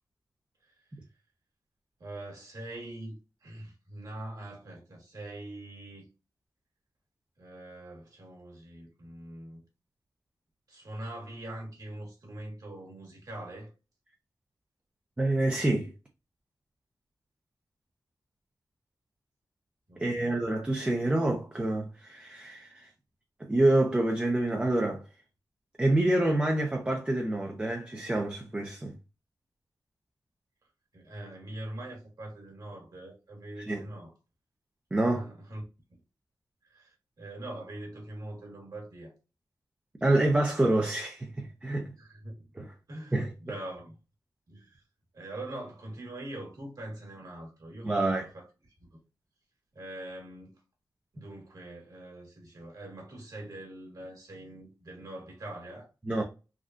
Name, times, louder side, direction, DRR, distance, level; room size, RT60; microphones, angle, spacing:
voice 1, 2.0-6.1 7.4-9.6 10.7-13.7 19.9-20.4 30.9-34.1 35.0-35.6 36.7-39.1 42.0-42.5 42.9-44.0 44.5-44.8 45.1-48.5 48.9-49.0 49.7-50.5 51.1-55.9, right 1 dB, 55° right, 1.3 m, -43 dB
voice 2, 15.2-15.9 20.0-22.9 23.5-25.0 25.8-28.9 33.7-33.8 34.9-35.2 40.0-41.9 42.6-42.7 43.1-43.3 47.8-48.3 56.1-56.2, right 1 dB, 15° right, 0.4 m, -27 dB
3.6 x 2.2 x 2.4 m
wide cardioid pair, 160°, 7 cm